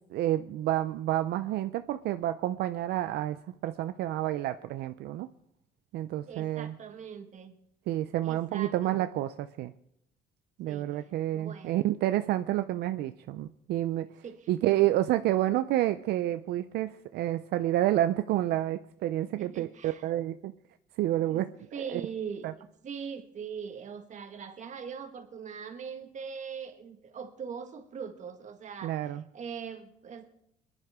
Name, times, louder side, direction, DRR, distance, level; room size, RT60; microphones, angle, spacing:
voice 1, 0.1-3.4 3.6-5.3 5.9-6.7 7.9-9.7 10.6-14.1 14.5-20.5 21.0-21.5 21.8-22.0 22.4-22.5 28.8-29.2, right 14 dB, 75° right, 10 dB, 0.5 m, -29 dB
voice 2, 6.3-7.5 8.2-9.1 10.7-10.9 11.3-11.9 14.2-14.5 19.3-20.2 21.3-21.4 21.7-22.5 22.8-30.3, right 6 dB, 45° right, 6 dB, 1.6 m, -41 dB
22.5 x 11.0 x 3.6 m, 0.77 s
cardioid pair, 110°, 17 cm